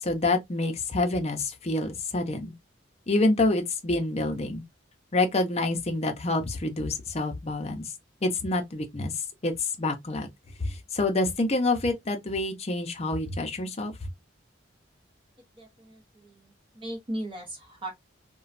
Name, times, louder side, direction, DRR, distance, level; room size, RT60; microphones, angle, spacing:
voice 1, 0.0-2.5 3.1-4.6 5.1-7.9 8.2-9.1 9.4-10.3 10.6-13.9, left 2 dB, 35° left, 0.6 m, -27 dB
voice 2, 15.5-17.9, right 1 dB, 30° right, 0.9 m, -38 dB
3.0 x 2.2 x 2.4 m
head